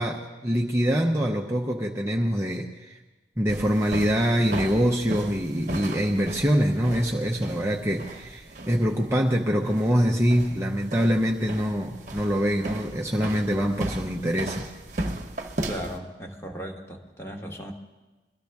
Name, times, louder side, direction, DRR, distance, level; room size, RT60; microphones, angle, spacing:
voice 1, 0.0-3.0 3.4-14.7, equal, 15° right, 0 dB, 0.7 m, -24 dB
sound 1, 3.5-16.0, right 1 dB, 45° right, 1.0 m, -36 dB
voice 2, 15.6-17.7, equal, 15° left, 2 dB, 1.2 m, -37 dB
22.5 x 13.0 x 3.5 m, 1.2 s
head